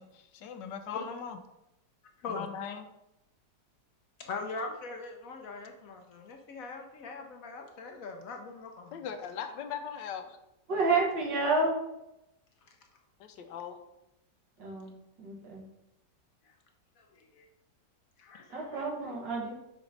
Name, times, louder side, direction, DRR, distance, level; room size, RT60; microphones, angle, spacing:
voice 1, 0.0-1.4 2.3-2.9 8.9-10.4 13.2-13.8, left 7 dB, 80° left, 8 dB, 1.3 m, -39 dB
voice 2, 4.2-9.0 17.0-17.5 18.2-18.8, left 3 dB, 65° left, 3 dB, 0.9 m, -41 dB
voice 3, 10.7-11.7 14.6-15.7 18.5-19.5, right 3 dB, 80° right, -3 dB, 2.3 m, -30 dB
6.1 x 4.4 x 3.9 m, 0.89 s
omnidirectional pair, 1.9 m